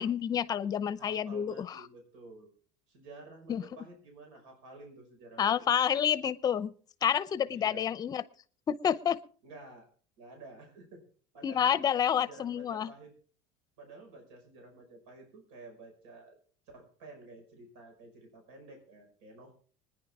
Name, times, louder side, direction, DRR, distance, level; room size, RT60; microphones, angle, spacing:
voice 1, 0.0-1.8 3.5-3.6 5.4-6.7 7.0-8.2 8.7-9.2 11.4-12.9, left 8 dB, 25° left, 15 dB, 0.7 m, -29 dB
voice 2, 1.0-2.5 2.9-5.6 7.5-8.0 9.4-9.9 10.2-11.0 11.3-11.8 12.2-13.1 13.8-16.4 16.7-19.5, right 2 dB, 85° right, 3 dB, 5.4 m, -51 dB
25.0 x 10.0 x 3.6 m, 0.44 s
cardioid pair, 160°, 15 cm